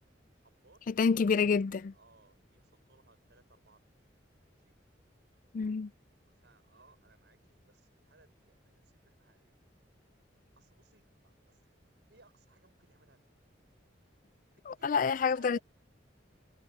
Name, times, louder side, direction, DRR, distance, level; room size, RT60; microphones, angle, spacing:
voice 1, 0.3-0.8 1.7-3.9 4.5-4.8 6.3-9.6 10.6-13.4 14.7-15.6, right 3 dB, 75° right, 5.3 m, -64 dB
voice 2, 0.9-1.9 5.5-5.9 14.7-15.6, left 5 dB, 45° left, 0.4 m, -28 dB
head